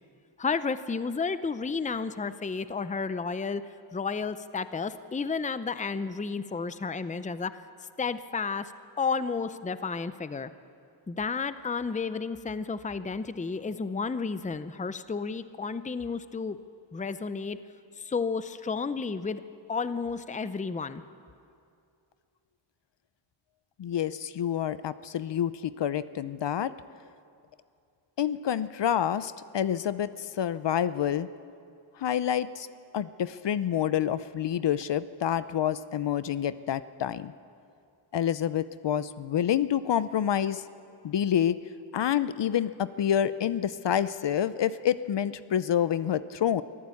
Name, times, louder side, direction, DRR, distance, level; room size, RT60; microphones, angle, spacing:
voice 1, 0.4-3.6 3.9-7.6 8.0-8.7 9.0-10.5 11.1-16.6 16.9-17.6 18.0-19.4 19.7-21.0, left 5 dB, 15° left, 13 dB, 0.6 m, -32 dB
voice 2, 23.8-26.7 28.2-31.3 32.0-32.7 32.9-37.3 38.1-40.6 41.0-41.6 41.9-46.6, left 9 dB, 60° left, 15 dB, 0.6 m, -28 dB
23.5 x 14.5 x 8.5 m, 2.5 s
wide cardioid pair, 100°, 49 cm